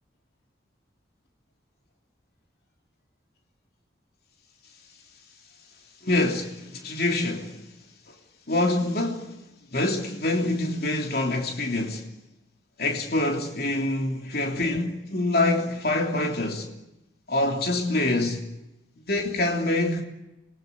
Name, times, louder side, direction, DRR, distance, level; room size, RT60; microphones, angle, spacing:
voice 1, 6.0-7.7 8.5-9.4 9.7-12.1 12.8-16.7 17.3-18.5 19.1-20.0, left 2 dB, 55° left, 3.2 m, -25 dB
26.5 x 21.5 x 10.0 m
head